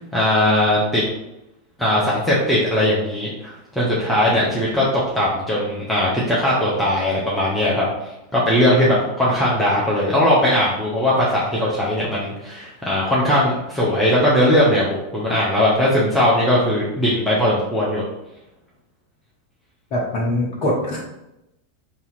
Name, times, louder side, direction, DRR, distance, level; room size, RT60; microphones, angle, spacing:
voice 1, 0.1-1.0 1.8-4.9 5.1-7.8 8.3-18.0, left 1 dB, 5° left, -6 dB, 0.8 m, -19 dB
voice 2, 19.9-21.0, left 1 dB, 40° left, -5 dB, 0.8 m, -22 dB
2.8 x 2.7 x 4.1 m, 0.91 s
figure-of-eight pair, 90°, 0 cm